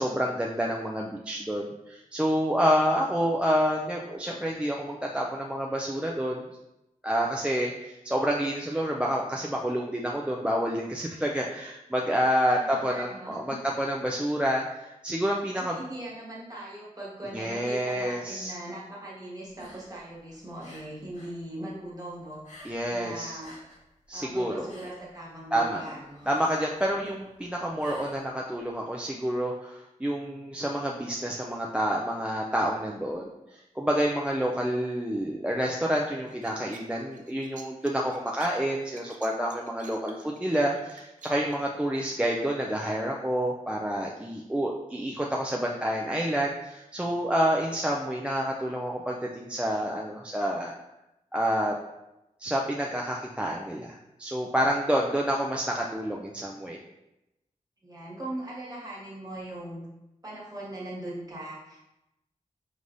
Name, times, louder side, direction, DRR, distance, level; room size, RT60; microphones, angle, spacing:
voice 1, 0.0-6.4 7.0-15.8 17.3-18.5 22.6-23.4 24.1-24.7 25.5-25.8 26.3-50.7 51.3-51.8 52.4-56.8, equal, 10° right, -2 dB, 0.3 m, -28 dB
voice 2, 12.5-13.6 15.5-23.5 24.1-26.5 57.8-59.8 60.2-61.8, right 1 dB, 30° right, -6 dB, 1.4 m, -40 dB
sound 1, 19.5-21.4 21.7-23.0 23.3-28.7, left 1 dB, 70° left, 1.3 m, -51 dB
sound 2, 36.3-41.6, right 5 dB, 75° right, 0.5 m, -49 dB
5.3 x 3.2 x 2.5 m, 0.92 s
wide cardioid pair, 115°, 13 cm